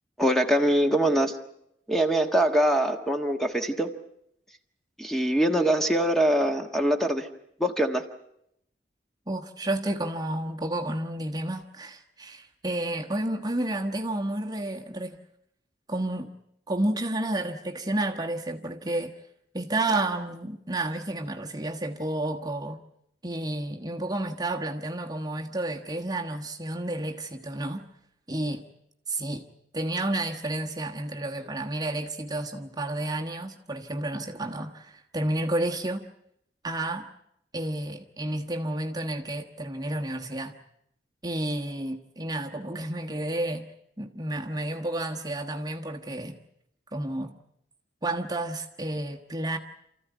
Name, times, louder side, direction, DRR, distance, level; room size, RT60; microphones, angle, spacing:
voice 1, 0.2-1.4 1.9-3.9 5.0-7.3 7.6-8.0, right 1 dB, ahead, 1.4 m, -23 dB
voice 2, 9.3-15.2 15.9-16.3 16.7-19.2 19.5-22.8 23.2-27.9 28.3-28.6 29.1-29.5 29.7-36.1 36.6-37.1 37.5-40.5 41.2-43.7 44.0-46.4 46.9-47.3 48.0-49.6, right 1 dB, 25° right, 1.3 m, -31 dB
28.0 x 14.5 x 9.3 m
head